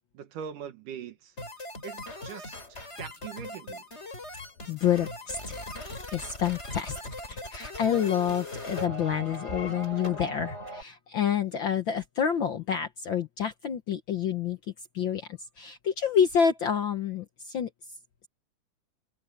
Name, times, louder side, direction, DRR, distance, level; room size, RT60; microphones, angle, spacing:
voice 1, 0.1-1.3 1.8-3.8, right 8 dB, 80° right, 2.9 m, -42 dB
sound 1, 1.4-10.8, left 1 dB, 20° left, 5.9 m, -39 dB
voice 2, 4.7-7.0 7.3-14.6 14.9-17.7, left 8 dB, 75° left, 1.1 m, -28 dB
omnidirectional pair, 3.7 m